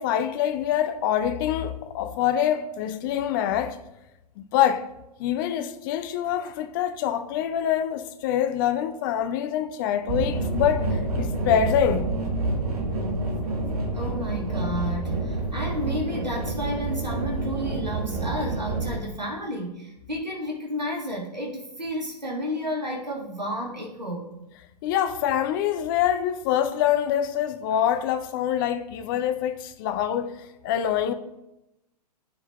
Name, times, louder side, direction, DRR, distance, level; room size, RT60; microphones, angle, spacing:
voice 1, 0.0-3.8 4.4-4.9 5.2-12.1 24.8-31.1, left 10 dB, 30° left, 0.6 m, -25 dB
sound 1, 10.1-19.0, right 2 dB, 65° right, 1.4 m, -28 dB
voice 2, 13.9-24.3, equal, 90° right, 1.6 m, -32 dB
13.0 x 4.5 x 2.3 m
figure-of-eight pair, 115°, 21 cm